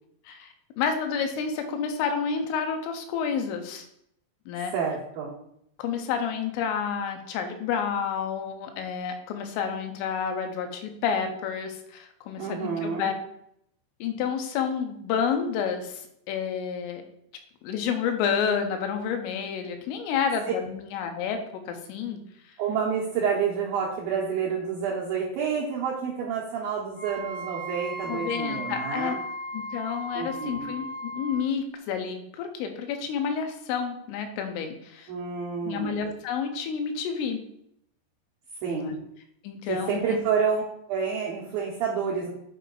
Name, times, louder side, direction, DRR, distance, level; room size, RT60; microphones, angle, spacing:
voice 1, 0.3-3.9 4.5-4.7 5.8-13.1 14.0-17.0 17.6-22.6 28.1-29.2 29.5-35.1 35.6-37.4 38.7-39.0 39.4-40.2, left 7 dB, 90° left, 6 dB, 3.4 m, -30 dB
voice 2, 4.7-5.3 12.4-13.1 22.6-29.2 30.1-30.7 35.1-36.0 38.6-38.9 39.7-42.3, right 6 dB, 80° right, -5 dB, 2.1 m, -29 dB
Wind instrument woodwind instrument, 26.9-31.5, equal, 65° left, 1.7 m, -36 dB
8.0 x 4.6 x 3.9 m, 0.73 s
omnidirectional pair, 5.6 m